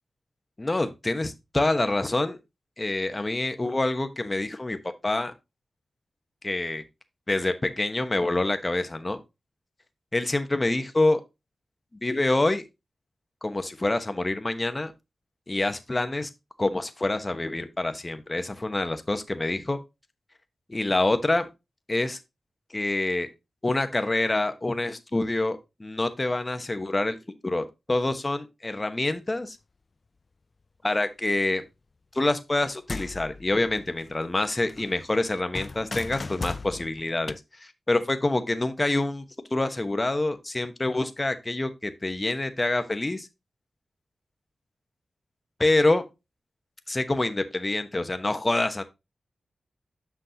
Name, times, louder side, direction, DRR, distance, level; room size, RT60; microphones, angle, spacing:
voice 1, 0.6-2.4 2.8-4.8 5.0-5.3 6.4-6.8 7.3-9.2 10.1-11.2 12.0-12.6 13.4-14.9 15.5-16.3 16.6-19.8 20.7-21.5 21.9-22.2 22.7-23.3 23.6-27.2 27.4-29.6 30.8-31.6 32.1-37.3 37.9-39.2 39.5-43.3 45.6-46.0 46.9-48.8, left 2 dB, 25° left, 1.0 m, -26 dB
sound 1, 32.5-34.4 34.7-37.4, left 3 dB, 45° left, 0.4 m, -38 dB
7.9 x 5.9 x 2.8 m
cardioid pair, 65°, 0 cm